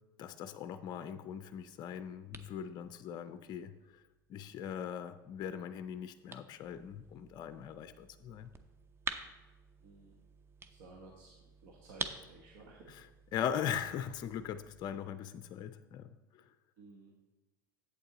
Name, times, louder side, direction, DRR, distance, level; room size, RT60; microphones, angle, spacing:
voice 1, 0.2-4.0 4.3-8.5 12.9-16.5, left 8 dB, 40° left, 11 dB, 0.4 m, -40 dB
sound 1, 1.5-14.9, right 4 dB, 20° right, 0.6 m, -49 dB
voice 2, 9.8-10.2 10.7-11.3 11.6-13.0 16.8-17.1, right 2 dB, 70° right, -1 dB, 1.2 m, -55 dB
8.2 x 7.8 x 3.9 m, 1.1 s
hypercardioid pair, 90°, 11 cm